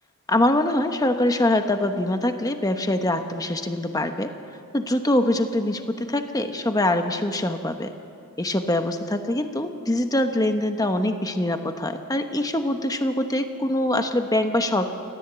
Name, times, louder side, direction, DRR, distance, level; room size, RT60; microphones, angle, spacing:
voice 1, 0.3-4.3 4.7-7.9 8.4-14.9, left 1 dB, 15° left, 7 dB, 1.0 m, -24 dB
29.0 x 13.5 x 8.0 m, 2.4 s
head